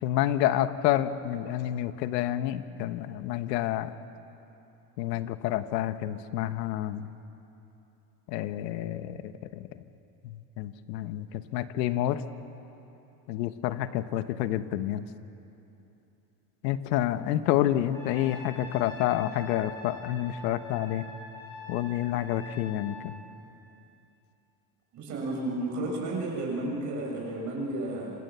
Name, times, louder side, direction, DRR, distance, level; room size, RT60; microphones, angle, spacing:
voice 1, 0.0-3.9 5.0-7.1 8.3-9.7 10.2-12.2 13.3-15.0 16.6-21.0 21.7-23.1, left 12 dB, 90° left, 11 dB, 1.4 m, -29 dB
Trumpet, 17.9-23.0, left 2 dB, 5° left, 6.3 m, -44 dB
voice 2, 24.9-28.1, right 2 dB, 35° right, -2 dB, 7.1 m, -32 dB
27.5 x 26.0 x 7.0 m, 2.9 s
cardioid pair, 170°, 48 cm